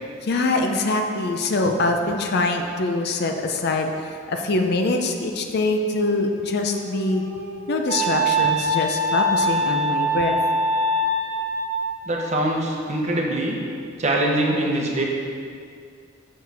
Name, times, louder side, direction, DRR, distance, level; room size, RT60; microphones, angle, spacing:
voice 1, 0.2-7.2 7.7-10.4, left 2 dB, 55° left, 4 dB, 0.5 m, -23 dB
Wind instrument woodwind instrument, 6.5-12.0, right 1 dB, 60° right, 1.1 m, -24 dB
voice 2, 12.1-13.6 14.0-15.0, right 1 dB, 35° right, -1 dB, 0.9 m, -23 dB
6.9 x 6.5 x 3.4 m, 2.3 s
head